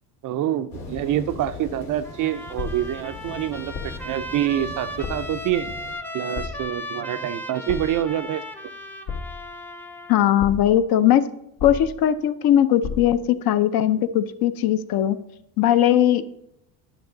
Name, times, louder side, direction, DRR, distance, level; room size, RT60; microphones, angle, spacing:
voice 1, 0.2-5.7 6.1-8.4, right 11 dB, 45° right, 12 dB, 0.4 m, -26 dB
sound 1, 0.7-5.9, left 3 dB, 90° left, 2.5 m, -40 dB
Trumpet, 2.0-10.2, equal, 5° left, 0.6 m, -36 dB
sound 2, 2.6-3.0 3.7-4.1 5.0-5.4 6.3-6.8 7.7-8.1 9.1-9.6 10.4-10.8 11.6-12.1 12.8-13.3, left 5 dB, 70° left, 1.5 m, -33 dB
voice 2, 10.1-11.3 11.6-15.2 15.6-16.2, left 11 dB, 50° left, 12 dB, 0.6 m, -19 dB
10.5 x 5.9 x 3.9 m, 0.82 s
supercardioid pair, 105°, 47 cm